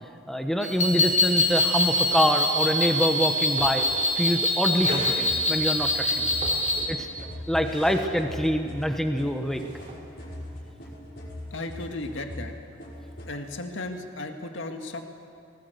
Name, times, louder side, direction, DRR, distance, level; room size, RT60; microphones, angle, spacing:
voice 1, 0.3-3.8 4.2-6.3 6.9-7.1 7.5-9.6, equal, ahead, 5 dB, 1.1 m, -25 dB
sound 1, 0.6-6.8, left 1 dB, 35° left, 3.0 m, -24 dB
sound 2, 3.4-4.2 4.8-5.2 6.2-7.1 7.5-8.1 9.2-9.9, right 1 dB, 40° right, 3.3 m, -38 dB
sound 3, 5.3-13.4, left 1 dB, 55° left, 5.5 m, -41 dB
voice 2, 11.5-12.5 13.3-15.0, left 2 dB, 80° left, 4 dB, 1.9 m, -35 dB
19.0 x 19.0 x 8.0 m, 2.6 s
head